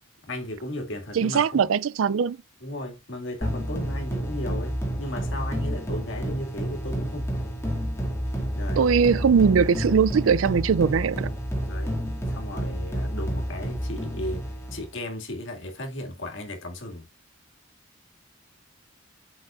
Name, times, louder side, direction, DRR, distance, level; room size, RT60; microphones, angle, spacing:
voice 1, 0.3-1.7 2.6-7.3 8.5-8.9 11.6-12.0 12.3-14.4 14.7-17.1, left 1 dB, 65° left, 2.2 m, -35 dB
voice 2, 1.1-2.4 8.8-11.3, right 6 dB, 80° right, 0.4 m, -21 dB
sound 1, 3.4-14.9, equal, 15° left, 2.3 m, -30 dB
7.6 x 5.9 x 2.5 m
head